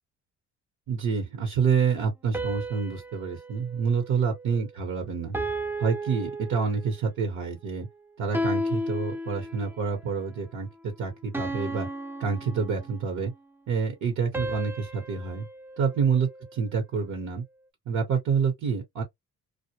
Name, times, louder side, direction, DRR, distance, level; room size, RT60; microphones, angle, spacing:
voice 1, 0.9-5.4 5.8-7.9 8.2-11.9 12.2-13.3 13.7-15.5 15.8-17.4 17.9-19.0, right 5 dB, 70° right, 1.1 m, -27 dB
sound 1, 2.3-4.8 5.3-7.1 8.3-9.9 11.3-13.2 14.3-16.7, equal, 5° right, 0.5 m, -34 dB
2.3 x 2.1 x 2.9 m
cardioid pair, 90°, 30 cm